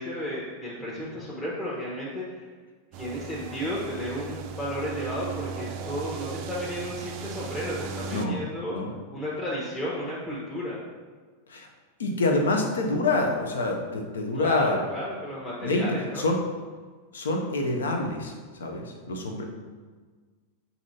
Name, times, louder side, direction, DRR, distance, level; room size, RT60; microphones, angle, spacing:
voice 1, 0.0-2.5 2.9-8.8 9.1-10.8 14.3-16.2, equal, 10° left, -7 dB, 0.9 m, -33 dB
sound 1, 2.9-8.3, right 6 dB, 45° right, 0.4 m, -37 dB
voice 2, 8.1-8.4 8.7-8.9 11.5-11.7 12.0-14.8 15.6-15.9 16.2-16.4 17.1-19.4, left 2 dB, 65° left, 3 dB, 0.6 m, -26 dB
7.0 x 2.7 x 2.7 m, 1.5 s
figure-of-eight pair, 90°, 0 cm